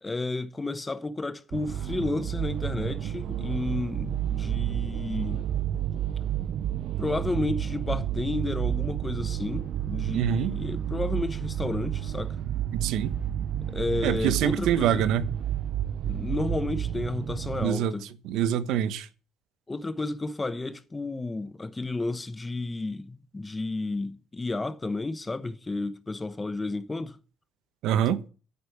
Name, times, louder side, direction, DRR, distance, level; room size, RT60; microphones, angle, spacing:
voice 1, 0.0-5.4 7.0-12.4 13.7-15.1 16.0-18.0 19.7-27.2, left 2 dB, 15° left, 1.0 m, -32 dB
sound 1, 1.5-17.7, right 11 dB, 55° right, 0.6 m, -31 dB
voice 2, 10.1-10.5 12.7-13.2 14.0-15.3 17.6-18.0 18.2-19.1 27.8-28.2, right 10 dB, 70° right, 1.1 m, -25 dB
9.4 x 8.4 x 8.0 m
cardioid pair, 150°, 0 cm